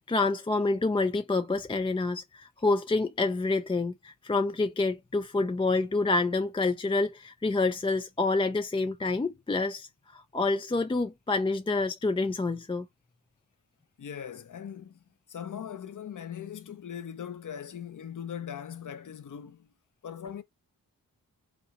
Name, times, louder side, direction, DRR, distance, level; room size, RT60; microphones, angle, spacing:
voice 1, 0.1-12.9, left 3 dB, 15° left, 0.3 m, -28 dB
voice 2, 14.0-15.0 15.3-19.7 20.0-20.4, left 8 dB, 55° left, 0.8 m, -40 dB
5.1 x 2.5 x 2.9 m
wide cardioid pair, 115°, 36 cm